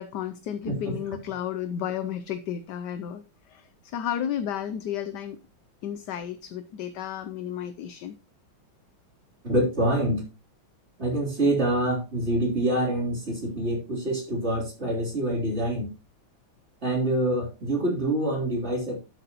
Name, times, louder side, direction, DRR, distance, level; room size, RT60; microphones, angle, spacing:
voice 1, 0.0-5.4 5.8-8.2, left 9 dB, 65° left, 10 dB, 1.2 m, -33 dB
voice 2, 0.7-1.0 9.4-10.2 11.0-15.9 16.8-19.0, right 1 dB, 30° right, -1 dB, 3.7 m, -26 dB
11.5 x 8.0 x 2.9 m, 0.29 s
omnidirectional pair, 2.2 m